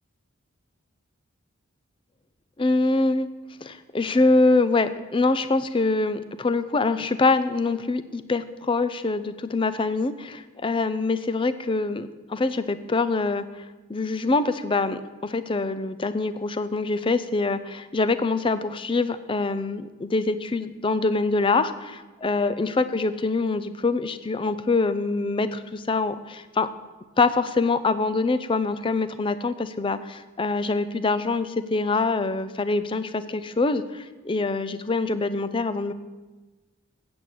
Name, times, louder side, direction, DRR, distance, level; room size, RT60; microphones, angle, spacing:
voice 1, 2.6-3.3 3.6-26.7 27.2-35.9, left 3 dB, 25° left, 13 dB, 0.4 m, -24 dB
8.5 x 6.1 x 8.3 m, 1.2 s
head